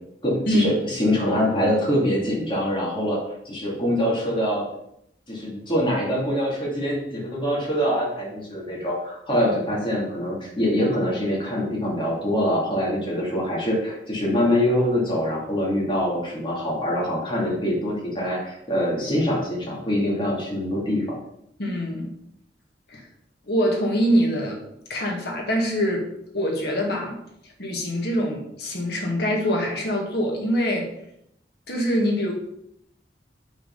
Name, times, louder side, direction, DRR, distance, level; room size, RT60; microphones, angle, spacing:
voice 1, 0.2-3.2 3.4-4.7 5.3-21.0, equal, 30° left, -4 dB, 2.5 m, -24 dB
voice 2, 21.6-22.1 22.9-23.1 23.5-24.6 24.9-27.2 27.6-30.9 31.7-32.3, equal, 65° left, 0 dB, 1.8 m, -24 dB
5.6 x 4.8 x 5.3 m, 0.76 s
head